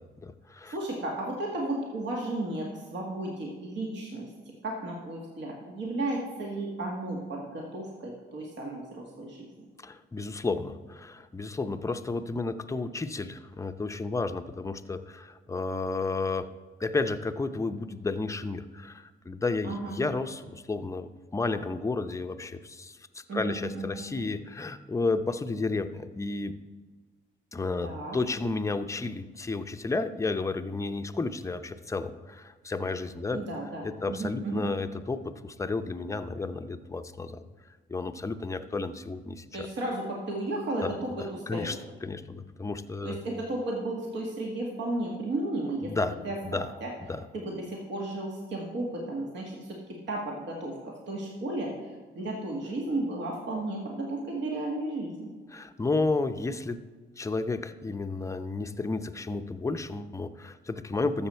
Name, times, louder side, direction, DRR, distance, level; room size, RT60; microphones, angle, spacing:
voice 1, 0.0-0.8 9.8-16.5 16.8-26.6 27.5-33.4 33.8-37.4 37.9-39.7 40.8-40.9 41.2-41.8 42.0-43.2 45.9-46.2 46.4-46.7 47.1-47.2 55.5-56.8 57.2-61.3, left 3 dB, 15° left, 8 dB, 0.6 m, -32 dB
voice 2, 0.7-9.5 19.6-20.0 23.3-24.0 27.8-28.2 33.3-34.7 39.5-41.8 43.0-46.9 47.3-55.3, right 2 dB, 65° right, -1 dB, 1.9 m, -34 dB
12.5 x 7.2 x 4.4 m, 1.4 s
cardioid pair, 90°, 20 cm